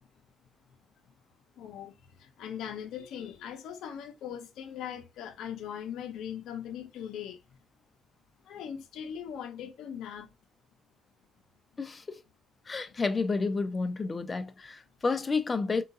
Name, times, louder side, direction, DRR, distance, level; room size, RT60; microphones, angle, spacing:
voice 1, 1.6-1.9 2.2-7.4 8.5-10.3, left 9 dB, 80° left, 0.6 m, -40 dB
voice 2, 11.8-12.2 12.7-15.8, left 4 dB, 30° left, 0.5 m, -30 dB
3.7 x 2.4 x 2.5 m
cardioid pair, 90°, 0 cm